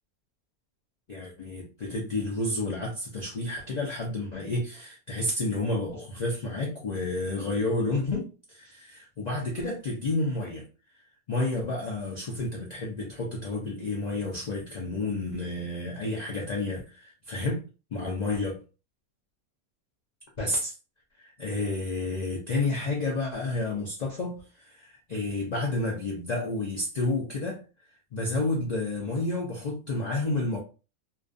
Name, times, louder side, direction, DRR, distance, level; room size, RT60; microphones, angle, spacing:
voice 1, 1.1-10.7 11.3-17.6 17.9-18.5 20.4-20.7 21.2-27.6 28.1-30.6, left 2 dB, 85° left, 0.3 m, -30 dB
2.4 x 2.3 x 2.5 m
omnidirectional pair, 1.5 m